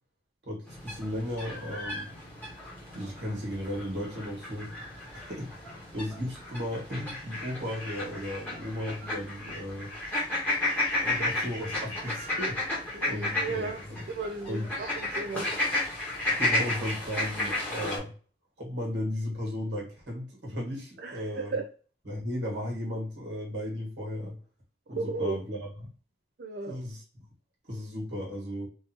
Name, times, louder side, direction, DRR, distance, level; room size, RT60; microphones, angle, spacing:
voice 1, 0.4-2.1 2.9-4.7 5.1-9.9 11.0-12.6 13.0-13.7 14.5-14.7 16.4-18.1 18.6-21.5 22.1-24.3 24.9-25.6 26.7-27.0 27.7-28.7, left 1 dB, 75° right, 1.6 m, -35 dB
sound 1, 0.7-18.0, left 2 dB, 10° left, 1.2 m, -33 dB
voice 2, 12.9-15.5 21.0-21.7 24.9-25.4 26.4-26.8, right 3 dB, 60° right, 0.4 m, -35 dB
3.5 x 2.6 x 2.9 m
head